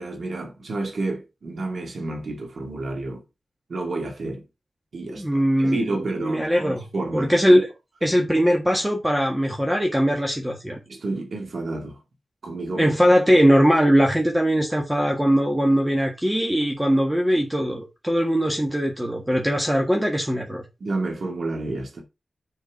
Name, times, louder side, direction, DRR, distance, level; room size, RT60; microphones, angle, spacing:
voice 1, 0.0-3.2 3.7-4.4 4.9-5.2 5.6-7.6 10.9-12.0 12.4-12.9 20.8-22.0, right 2 dB, 75° right, 2.3 m, -30 dB
voice 2, 5.2-5.8 6.2-6.9 7.1-7.7 8.0-10.8 12.8-20.6, equal, 10° right, 1.6 m, -20 dB
6.7 x 4.7 x 4.8 m
wide cardioid pair, 95°, 0 cm